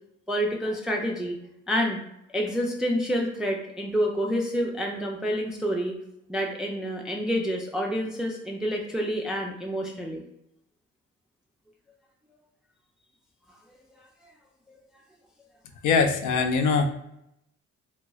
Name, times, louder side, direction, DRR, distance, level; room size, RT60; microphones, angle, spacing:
voice 1, 0.3-1.4 1.7-2.0 2.3-6.0 6.3-10.2 14.7-14.8, equal, ahead, 0 dB, 0.3 m, -28 dB
voice 2, 15.8-16.9, left 5 dB, 80° left, 6 dB, 0.5 m, -22 dB
3.1 x 2.8 x 2.3 m, 0.79 s
cardioid pair, 90°, 30 cm